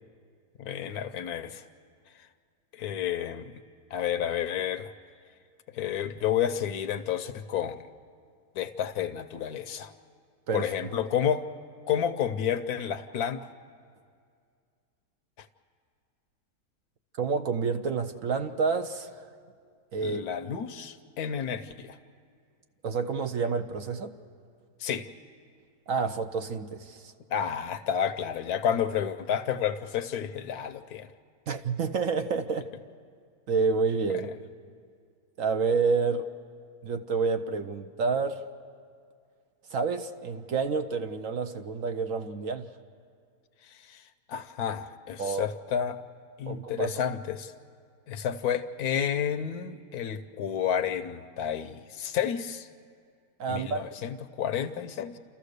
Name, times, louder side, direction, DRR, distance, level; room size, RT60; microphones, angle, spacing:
voice 1, 0.6-1.6 2.7-3.5 3.9-4.9 5.7-7.8 8.6-9.9 10.5-11.5 11.9-13.5 15.4-15.5 20.0-22.0 24.8-25.1 27.3-31.1 43.7-44.0 44.3-46.0 46.4-47.5 48.1-52.7 53.5-55.2, left 9 dB, 70° left, 11 dB, 1.1 m, -30 dB
voice 2, 10.5-10.9 17.2-19.3 19.9-20.2 22.8-24.1 25.9-27.1 31.5-32.7 33.5-34.3 35.4-36.3 36.8-38.4 39.7-42.7 45.2-45.5 46.5-47.0 53.4-53.9, right 4 dB, 60° right, 8 dB, 1.0 m, -29 dB
29.5 x 14.0 x 6.6 m, 2.2 s
omnidirectional pair, 1.8 m